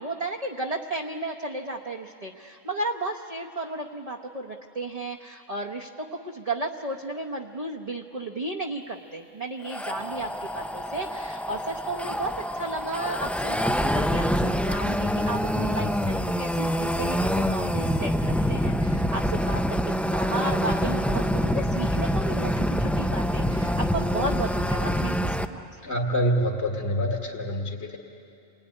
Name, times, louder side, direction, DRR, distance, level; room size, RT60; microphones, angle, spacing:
voice 1, 0.0-25.6, right 2 dB, 30° right, -1 dB, 1.1 m, -34 dB
sound 1, 9.6-25.5, equal, ahead, 0.5 m, -26 dB
voice 2, 25.8-28.0, equal, 60° left, -1 dB, 2.3 m, -26 dB
28.0 x 21.0 x 9.9 m, 2.7 s
omnidirectional pair, 1.3 m